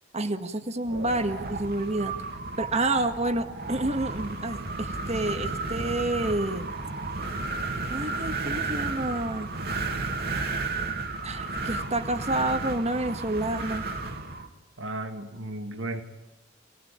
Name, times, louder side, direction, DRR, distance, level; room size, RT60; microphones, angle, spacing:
voice 1, 0.1-2.1 2.6-6.7 7.9-9.5 11.2-13.8, right 2 dB, 35° right, 9 dB, 1.8 m, -29 dB
Wind, 0.8-14.5, right 3 dB, 55° right, 2.5 m, -33 dB
voice 2, 14.8-16.0, right 2 dB, 80° right, 7 dB, 2.6 m, -34 dB
28.0 x 19.5 x 8.8 m, 1.0 s
head